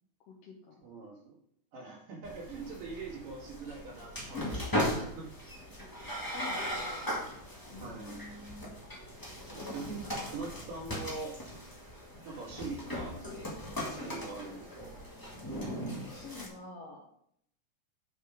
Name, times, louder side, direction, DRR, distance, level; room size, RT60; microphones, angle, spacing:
voice 1, 0.2-0.8 4.3-4.6 6.2-7.0 7.7-8.7 9.6-10.2 16.1-17.0, left 5 dB, 65° left, -1 dB, 1.8 m, -47 dB
voice 2, 0.8-1.4 1.7-5.4 7.8-8.2 9.4-11.3 12.3-13.2 14.0-15.0, right 3 dB, 90° right, -3 dB, 3.9 m, -43 dB
sound 1, 2.2-16.5, equal, 25° left, 0.4 m, -38 dB
7.4 x 6.4 x 5.0 m, 0.70 s
omnidirectional pair, 3.7 m